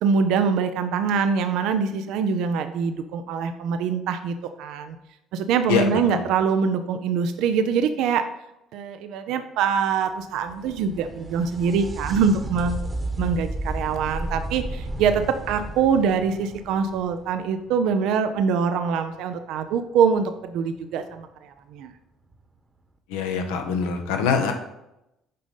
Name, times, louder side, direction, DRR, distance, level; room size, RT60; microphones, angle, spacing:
voice 1, 0.0-5.0 5.3-8.3 8.7-12.9 13.2-21.9, right 6 dB, 70° right, 8 dB, 0.5 m, -24 dB
voice 2, 5.7-6.2 23.1-24.5, left 6 dB, 80° left, 5 dB, 1.0 m, -24 dB
sound 1, 10.2-17.8 21.2-21.3 22.3-22.4, right 1 dB, 30° right, 1.1 m, -33 dB
6.7 x 5.1 x 5.3 m, 0.88 s
hypercardioid pair, 55°, 0 cm